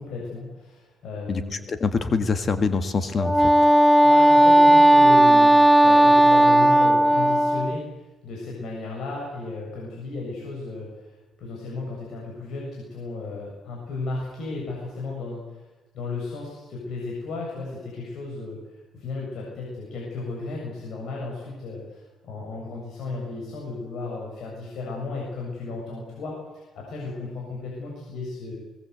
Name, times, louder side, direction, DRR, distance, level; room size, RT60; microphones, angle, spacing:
voice 1, 0.0-1.6 4.0-7.8 8.2-11.1 11.4-15.6 15.9-18.6 18.9-28.6, left 3 dB, 70° left, -2 dB, 7.4 m, -34 dB
voice 2, 1.3-3.7, left 4 dB, 45° left, 9 dB, 1.7 m, -25 dB
Wind instrument woodwind instrument, 3.2-7.8, right 1 dB, 5° left, 1.1 m, -15 dB
21.5 x 20.5 x 8.2 m, 1.2 s
cardioid pair, 90°, 0 cm